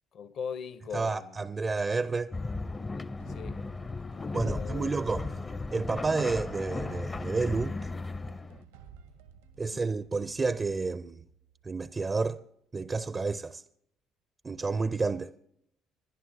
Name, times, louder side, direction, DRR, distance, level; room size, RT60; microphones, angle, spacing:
voice 1, 0.1-1.5 2.9-3.6 4.1-4.9 9.6-9.8, left 7 dB, 55° left, 0.8 m, -41 dB
voice 2, 0.9-2.3 4.3-5.3 5.7-7.8 9.6-11.2 11.6-12.4 12.7-13.6 14.4-15.3, right 4 dB, 30° right, 0.4 m, -30 dB
sound 1, 2.3-8.6, left 3 dB, 25° left, 0.6 m, -36 dB
sound 2, 3.2-12.0, right 7 dB, 85° right, 1.1 m, -54 dB
26.5 x 11.0 x 2.7 m
hypercardioid pair, 55°, 0 cm